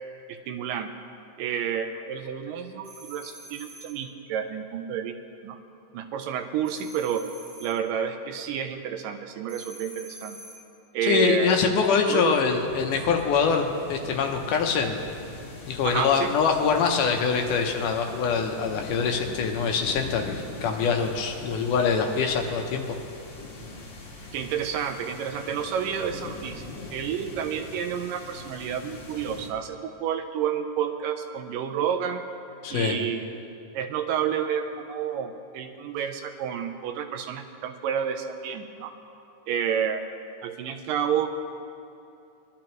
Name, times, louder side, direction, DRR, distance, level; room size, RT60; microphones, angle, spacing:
voice 1, 0.5-0.9 1.4-5.1 5.4-5.6 5.9-7.3 7.6-10.4 10.9-11.7 12.1-12.4 15.8-16.3 24.3-26.6 26.9-32.2 32.7-33.4 33.7-38.9 39.5-40.1 40.4-41.3, right 8 dB, 80° right, 6 dB, 2.2 m, -30 dB
sound 1, 2.8-4.0 6.6-7.8 9.5-10.7, right 2 dB, 50° right, 1.5 m, -46 dB
voice 2, 11.0-15.0 15.7-23.0 32.6-33.0, left 5 dB, 75° left, 3 dB, 2.2 m, -24 dB
sound 2, 11.4-29.5, left 2 dB, 40° left, 2.0 m, -42 dB
22.0 x 11.5 x 3.0 m, 2.7 s
omnidirectional pair, 4.0 m